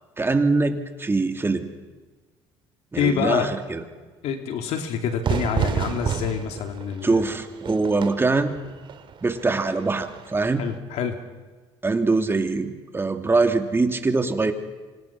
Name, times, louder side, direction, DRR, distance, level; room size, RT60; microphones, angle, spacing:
voice 1, 0.2-1.7 2.9-3.8 7.0-8.5 9.2-10.7 11.8-14.5, right 3 dB, 20° right, 6 dB, 2.7 m, -23 dB
voice 2, 3.0-3.6 4.2-7.2 10.6-11.1, left 7 dB, 70° left, 5 dB, 2.7 m, -26 dB
Fire / Fireworks, 5.2-10.8, right 7 dB, 45° right, 2.3 m, -30 dB
28.0 x 26.0 x 6.0 m, 1.3 s
supercardioid pair, 95°, 11 cm